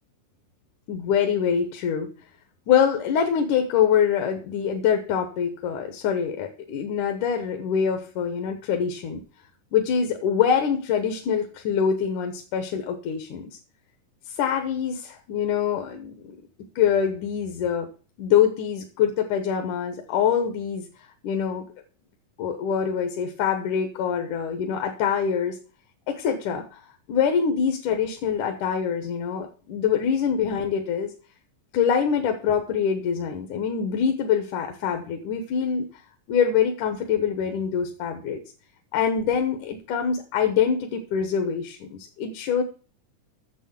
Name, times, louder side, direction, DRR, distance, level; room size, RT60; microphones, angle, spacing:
voice 1, 0.9-2.1 2.7-9.2 9.7-13.5 14.3-16.4 16.8-17.9 18.2-21.7 22.4-25.6 26.1-26.8 27.1-31.1 31.7-36.0 36.3-38.4 38.9-42.6, left 7 dB, 75° left, 5 dB, 2.6 m, -24 dB
8.3 x 7.1 x 7.3 m, 0.39 s
omnidirectional pair, 3.7 m